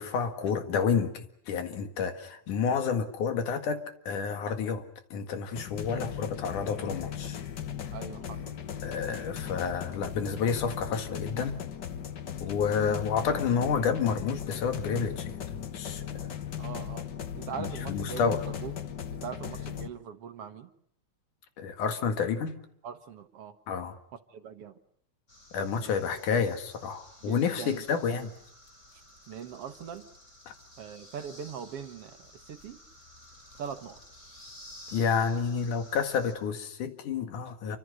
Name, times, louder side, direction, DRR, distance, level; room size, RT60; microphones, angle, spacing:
voice 1, 0.0-4.9 5.1-7.4 8.8-11.6 12.4-16.4 17.6-18.4 21.6-22.6 23.7-24.0 25.5-28.3 30.5-30.6 34.9-37.8, left 6 dB, 90° left, 8 dB, 3.4 m, -30 dB
sound 1, 5.6-19.9, left 9 dB, 55° left, 1.2 m, -38 dB
voice 2, 7.9-8.5 12.8-12.9 16.6-17.1 17.4-18.7 19.2-20.7 22.8-23.6 24.3-24.8 25.8-26.0 26.3-26.4 27.3-27.8 29.3-30.1 30.8-32.8 33.6-34.0, right 7 dB, 60° right, 9 dB, 1.9 m, -41 dB
sound 2, 25.3-36.3, left 1 dB, 20° left, 5.0 m, -53 dB
28.5 x 25.0 x 6.5 m, 0.69 s
omnidirectional pair, 3.5 m